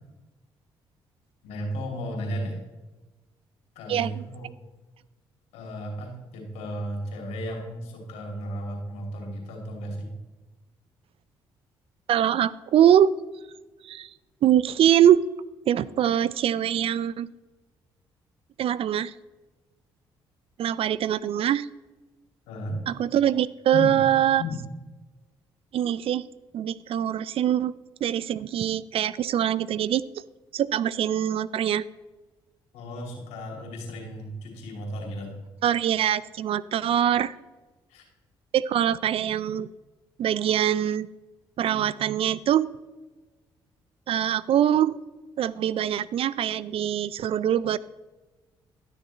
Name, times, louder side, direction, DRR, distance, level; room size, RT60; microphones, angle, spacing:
voice 1, 1.4-2.6 3.7-4.5 5.5-10.1 22.5-22.8 23.7-24.0 24.4-24.6 32.7-35.4 37.9-38.0, equal, 80° left, 1 dB, 2.6 m, -34 dB
voice 2, 3.9-4.2 12.1-13.1 13.9-14.1 14.4-15.2 15.7-17.3 18.6-19.1 20.6-21.7 22.9-24.4 25.7-26.2 26.5-27.7 28.0-30.0 30.5-31.8 35.6-37.3 38.5-39.7 40.2-41.1 41.6-42.7 44.1-45.0 45.4-47.8, right 10 dB, 60° right, 19 dB, 0.4 m, -23 dB
12.0 x 6.7 x 4.1 m, 1.2 s
supercardioid pair, 55°, 11 cm